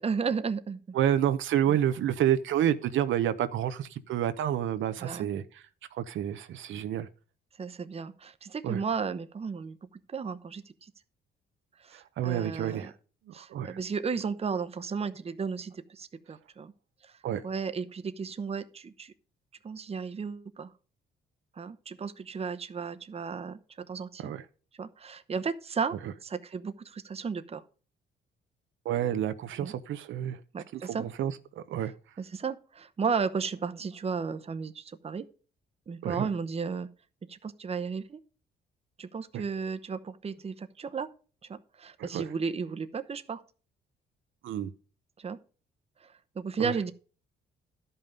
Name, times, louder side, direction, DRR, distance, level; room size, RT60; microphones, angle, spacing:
voice 1, 0.0-0.8 1.7-1.8 5.0-5.3 7.6-9.8 10.1-10.6 11.8-12.9 13.3-16.7 17.0-17.1 17.4-19.1 19.6-20.7 21.6-24.3 24.8-25.9 26.2-27.6 29.6-29.7 30.5-31.1 32.2-35.3 35.9-36.9 37.3-38.2 39.0-41.1 41.5-43.4 45.2-45.4 46.0-46.9, right 5 dB, 30° right, 10 dB, 0.8 m, -34 dB
voice 2, 0.9-5.6 5.9-7.1 8.6-8.8 11.9-12.9 13.4-13.8 17.2-17.4 24.2-24.4 28.8-30.4 30.7-31.9 36.0-36.3 39.3-39.4 42.0-42.2 44.4-44.7 46.6-46.7, right 10 dB, 75° right, 10 dB, 0.8 m, -29 dB
12.5 x 5.6 x 5.2 m, 0.38 s
cardioid pair, 90°, 20 cm